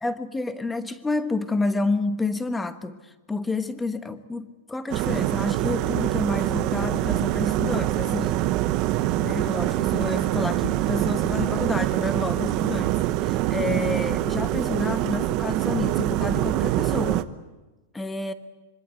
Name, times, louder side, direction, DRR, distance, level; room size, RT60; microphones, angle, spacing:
voice 1, 0.0-8.4 9.2-17.3 17.9-18.3, left 3 dB, 5° left, 10 dB, 1.2 m, -29 dB
sound 1, 4.9-17.2, right 15 dB, 35° right, 1.0 m, -24 dB
25.5 x 24.5 x 8.3 m, 1.1 s
supercardioid pair, 160°, 0 cm